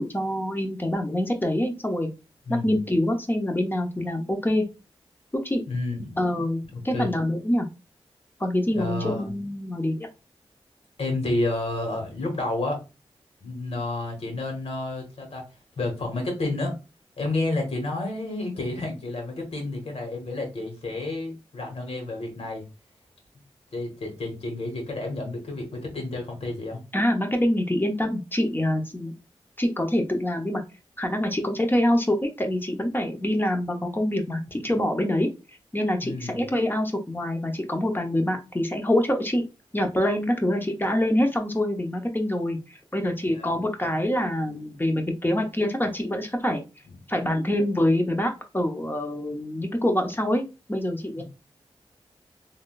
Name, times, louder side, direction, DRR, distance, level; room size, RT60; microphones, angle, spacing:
voice 1, 0.0-2.1 2.5-4.6 5.3-5.6 6.2-7.7 8.4-10.1 26.9-29.1 29.6-30.6 31.0-35.3 35.7-39.4 39.7-46.6 47.1-51.2, left 1 dB, 20° left, 3 dB, 0.8 m, -25 dB
voice 2, 5.7-6.2 6.7-7.1 8.7-9.3 11.0-12.8 13.4-15.5 15.8-16.7 17.2-22.6 23.7-26.8 36.0-36.4 43.3-43.5 51.2-51.3, left 2 dB, 70° left, 2 dB, 1.4 m, -30 dB
3.5 x 2.6 x 2.4 m, 0.28 s
cardioid pair, 50°, 10 cm